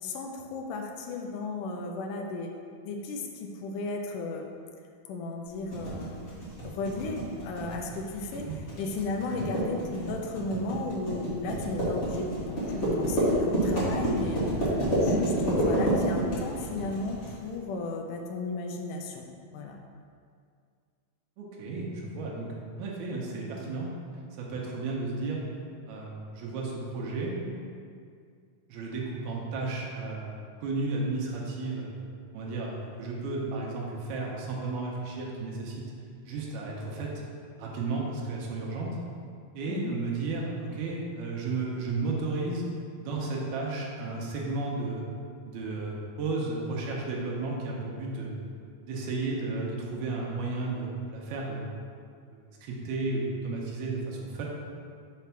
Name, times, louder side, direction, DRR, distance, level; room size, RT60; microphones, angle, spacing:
voice 1, 0.0-2.5 2.9-4.5 5.1-8.5 8.8-19.3 19.5-19.8 39.7-40.0, left 3 dB, 85° left, 2 dB, 1.8 m, -35 dB
sound 1, 5.7-17.3, right 1 dB, 35° left, 1.1 m, -28 dB
voice 2, 21.4-22.5 22.8-23.9 24.4-25.4 25.9-27.3 28.7-30.3 30.6-31.9 32.3-35.8 36.2-37.1 37.6-38.9 39.5-42.7 43.0-45.0 45.5-48.3 48.8-51.7 52.3-54.5, right 3 dB, 85° right, -2 dB, 2.8 m, -33 dB
6.0 x 4.5 x 5.8 m, 2.2 s
omnidirectional pair, 4.4 m